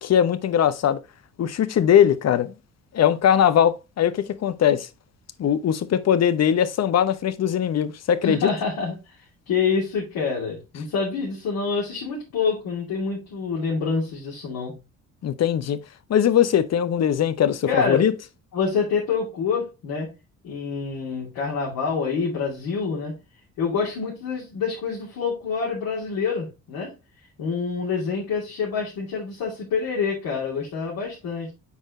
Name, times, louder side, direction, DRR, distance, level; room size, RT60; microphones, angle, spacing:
voice 1, 0.0-1.0 1.4-2.5 2.9-4.9 5.4-8.5 15.2-15.8 16.1-18.1, left 9 dB, 45° left, 0.8 m, -20 dB
voice 2, 8.2-9.1 9.5-14.8 17.7-18.1 18.5-20.1 20.4-23.1 23.6-26.9 27.4-31.5, left 5 dB, 65° left, 2.7 m, -26 dB
8.1 x 4.4 x 3.0 m
hypercardioid pair, 50°, 38 cm